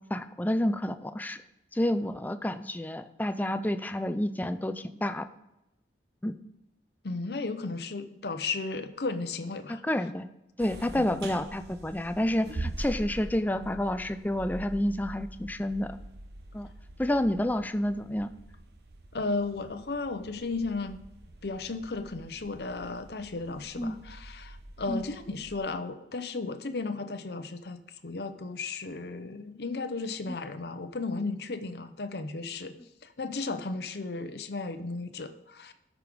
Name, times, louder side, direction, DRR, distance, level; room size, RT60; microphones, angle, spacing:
voice 1, 0.1-1.4 1.7-5.3 6.2-6.4 9.8-10.3 10.6-15.9 16.5-16.7 17.0-18.3 23.8-24.0 24.9-25.0, left 1 dB, 10° left, 10 dB, 0.4 m, -29 dB
voice 2, 7.0-9.8 10.7-11.2 19.1-21.0 21.4-32.7 33.0-35.7, left 3 dB, 65° left, 8 dB, 0.7 m, -35 dB
sound 1, 10.6-25.6, right 1 dB, 70° right, 0.9 m, -44 dB
12.5 x 5.0 x 5.2 m, 0.90 s
head